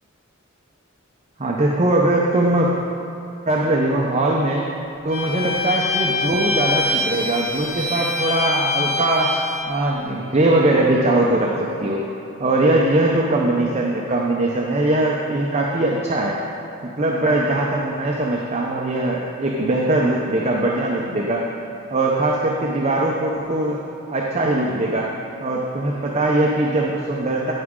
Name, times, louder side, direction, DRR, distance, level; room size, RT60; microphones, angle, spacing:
voice 1, 1.4-2.7 3.5-4.6 5.0-9.3 9.7-12.0 12.4-16.4 17.0-21.5 21.9-23.8 24.1-25.1 25.4-27.5, right 2 dB, 30° right, -2 dB, 0.7 m, -21 dB
Bowed string instrument, 5.1-9.7, left 2 dB, 40° left, 1.2 m, -24 dB
16.0 x 6.0 x 3.7 m, 2.6 s
head